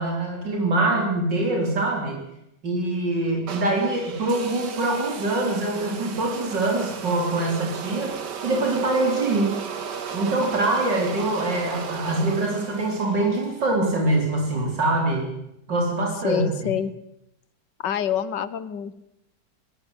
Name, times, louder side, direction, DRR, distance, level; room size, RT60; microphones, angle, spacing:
voice 1, 0.0-2.2 2.6-8.1 8.4-9.5 10.1-15.3 15.7-16.4, right 2 dB, 90° right, 0 dB, 4.9 m, -24 dB
sound 1, 3.5-13.7, right 6 dB, 70° right, 2.2 m, -35 dB
voice 2, 16.2-17.0 17.8-18.9, left 9 dB, 85° left, 15 dB, 1.8 m, -26 dB
22.0 x 18.5 x 8.1 m, 0.83 s
omnidirectional pair, 1.9 m